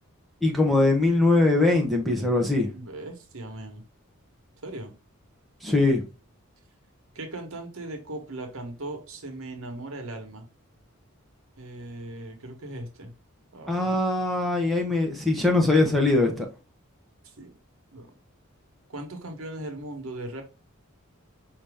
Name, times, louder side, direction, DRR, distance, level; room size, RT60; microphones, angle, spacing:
voice 1, 0.4-2.7 5.6-6.0 13.7-16.5, left 2 dB, ahead, 0.8 m, -22 dB
voice 2, 2.7-3.8 4.6-4.9 7.1-10.5 11.6-13.1 13.5-14.0 17.4-17.5 17.9-18.1 18.9-20.4, right 1 dB, 75° right, 1.1 m, -38 dB
4.9 x 2.8 x 3.4 m
head